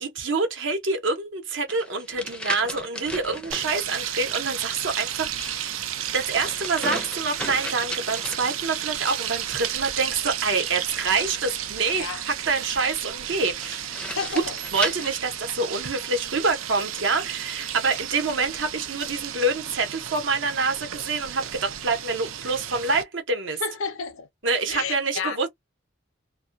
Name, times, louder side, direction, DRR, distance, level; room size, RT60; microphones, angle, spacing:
voice 1, 0.0-5.7 6.1-13.9 14.7-23.6 24.4-25.5, right 3 dB, 65° right, 0.8 m, -26 dB
sound 1, 1.7-3.7 5.1-9.0 10.4-11.7 13.6-16.0 16.7-17.7, left 1 dB, 5° left, 0.4 m, -37 dB
sound 2, 3.5-23.0, right 10 dB, 80° right, 0.4 m, -33 dB
voice 2, 14.1-14.5 23.6-25.5, left 5 dB, 80° left, 0.6 m, -32 dB
2.2 x 2.2 x 2.5 m
head